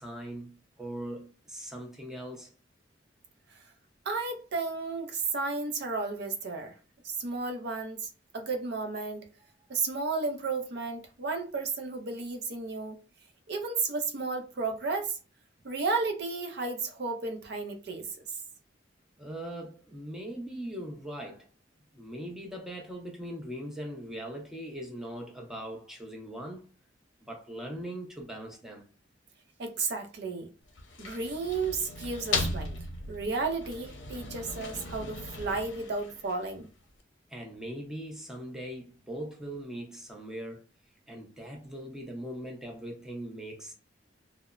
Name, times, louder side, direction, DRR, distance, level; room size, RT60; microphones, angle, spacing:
voice 1, 0.0-2.5 19.2-21.5 21.9-26.7 27.2-28.8 37.3-40.6 41.1-43.7, right 1 dB, 5° right, 0.6 m, -40 dB
voice 2, 4.1-6.7 7.0-9.3 9.7-13.0 13.5-15.2 15.6-18.1 29.6-30.5 31.0-32.8 33.1-36.7, right 4 dB, 60° right, 0.5 m, -33 dB
sound 1, 30.6-36.7, left 3 dB, 85° left, 0.6 m, -37 dB
2.9 x 2.0 x 2.3 m
head